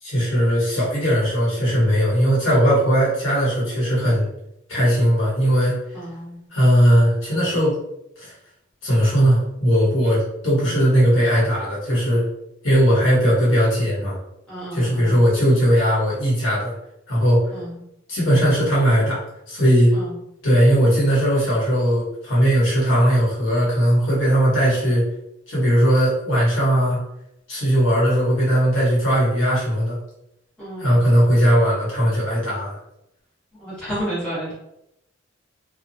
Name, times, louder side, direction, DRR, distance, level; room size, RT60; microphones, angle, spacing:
voice 1, 0.0-4.3 4.7-6.0 6.5-7.8 8.2-8.3 8.8-12.2 12.6-14.2 14.7-16.7 17.1-17.4 18.1-19.9 20.4-25.0 25.5-27.0 27.5-30.0 30.8-32.8, equal, 70° left, -6 dB, 1.3 m, -18 dB
voice 2, 5.9-6.4 14.5-15.2 17.5-17.8 19.9-20.1 30.6-30.9 33.5-34.5, right 1 dB, 5° left, -10 dB, 1.4 m, -31 dB
2.8 x 2.3 x 2.7 m, 0.80 s
head